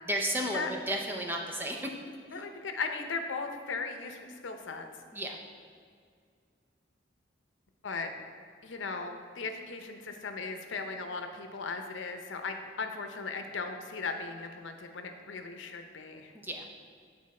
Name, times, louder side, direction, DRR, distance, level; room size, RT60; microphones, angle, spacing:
voice 1, 0.0-1.9 5.1-5.4 16.3-16.8, equal, 10° right, 1 dB, 0.6 m, -33 dB
voice 2, 2.3-4.9 7.8-8.1 8.6-16.3, left 4 dB, 85° left, 5 dB, 0.7 m, -37 dB
9.7 x 4.0 x 4.2 m, 2.1 s
head